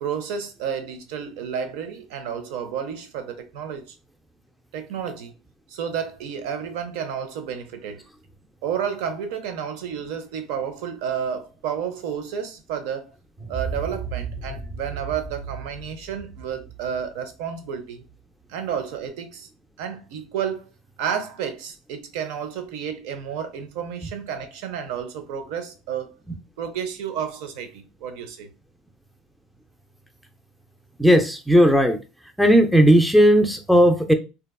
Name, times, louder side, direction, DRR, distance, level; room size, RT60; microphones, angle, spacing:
voice 1, 0.0-4.0 4.7-5.3 5.7-8.0 8.6-13.1 13.5-18.0 18.5-19.5 19.8-20.7 21.0-26.2 26.6-28.5, right 8 dB, 75° right, 0.6 m, -31 dB
sound 1, 13.4-18.1, right 5 dB, 25° right, 0.9 m, -35 dB
voice 2, 31.0-32.0 32.4-34.1, equal, ahead, 0.4 m, -16 dB
2.8 x 2.2 x 2.3 m
supercardioid pair, 120°, 0 cm